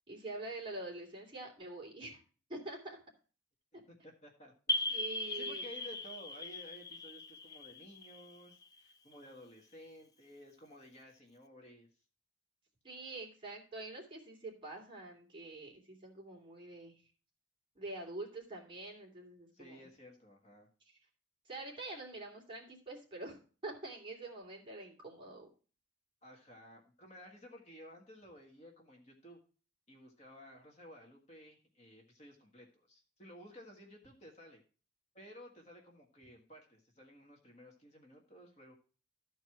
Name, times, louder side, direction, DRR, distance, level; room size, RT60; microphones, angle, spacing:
voice 1, 0.1-2.2 2.5-3.0 4.9-5.7 12.8-17.0 17.7-19.9 20.9-21.0 21.5-25.5, right 2 dB, 25° right, -3 dB, 3.0 m, -46 dB
voice 2, 3.9-4.5 5.3-11.9 19.5-20.7 26.2-29.4 29.9-34.6 35.1-38.7, equal, 35° left, 0 dB, 1.6 m, -55 dB
sound 1, 4.7-9.1, left 2 dB, 20° left, 0.4 m, -39 dB
13.0 x 4.7 x 5.8 m, 0.38 s
head